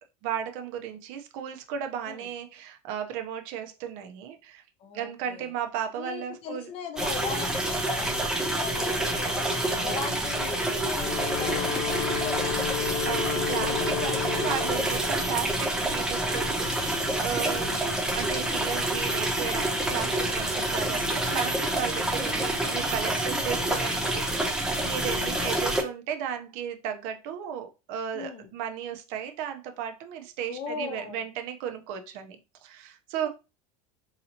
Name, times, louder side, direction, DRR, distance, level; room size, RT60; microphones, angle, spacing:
voice 1, 0.2-4.6 4.9-6.7 9.7-10.1 13.0-17.7 18.1-32.4 32.6-33.3, right 9 dB, 55° right, 0.7 m, -35 dB
voice 2, 4.8-5.5 6.0-9.5 9.8-12.9 17.4-17.7 25.0-25.5 28.1-28.5 30.5-31.2 33.2-33.3, left 6 dB, 35° left, 0.7 m, -39 dB
sound 1, 7.0-25.8, right 1 dB, 5° right, 0.4 m, -28 dB
Wind instrument woodwind instrument, 10.8-15.0, left 10 dB, 80° left, 0.8 m, -32 dB
4.0 x 2.8 x 2.8 m
supercardioid pair, 160°, 17 cm